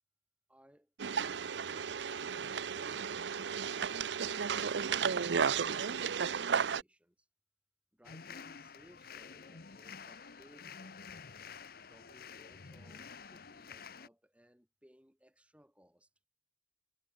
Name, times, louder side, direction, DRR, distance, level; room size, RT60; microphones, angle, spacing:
voice 1, 0.5-3.4 7.9-11.2 11.8-16.1, equal, 5° right, 5.8 m, -63 dB
sound 1, 1.0-6.8, right 6 dB, 90° right, 0.6 m, -33 dB
sound 2, 8.0-14.1, left 6 dB, 55° left, 0.9 m, -50 dB
head